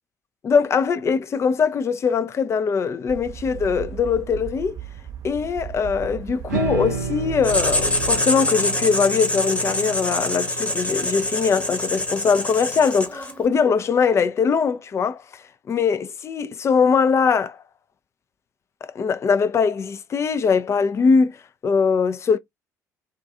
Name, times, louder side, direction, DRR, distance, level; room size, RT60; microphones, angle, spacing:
voice 1, 0.4-4.8 5.2-15.2 15.7-17.6 18.8-21.4 21.6-22.4, left 5 dB, 30° left, 0.4 m, -21 dB
sound 1, 3.1-8.2, right 10 dB, 40° right, 0.7 m, -36 dB
sound 2, 6.5-12.8, right 6 dB, 75° right, 0.6 m, -32 dB
Writing, 7.4-13.4, left 1 dB, 15° left, 0.9 m, -25 dB
2.4 x 2.3 x 2.6 m
figure-of-eight pair, 50°, 9 cm